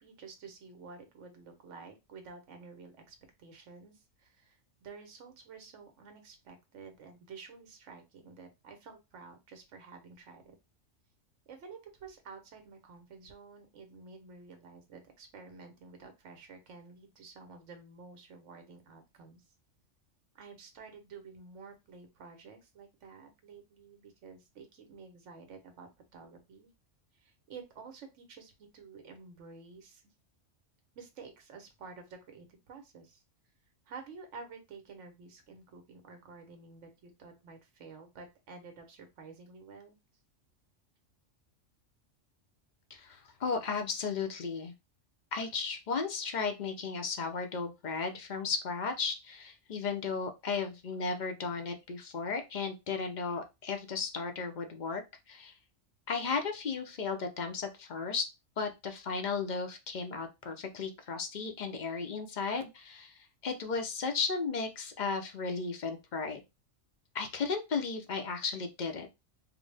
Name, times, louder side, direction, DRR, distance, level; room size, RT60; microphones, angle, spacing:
voice 1, 0.0-10.5 11.5-19.4 20.3-26.7 27.1-30.1 30.9-33.2 33.9-40.0, right 4 dB, 75° right, 6 dB, 1.2 m, -51 dB
voice 2, 42.9-44.7 45.3-55.0 55.3-55.5 56.1-58.3 58.6-66.4 67.1-69.1, left 5 dB, 50° left, 5 dB, 0.6 m, -35 dB
3.9 x 2.0 x 3.3 m, 0.24 s
omnidirectional pair, 1.3 m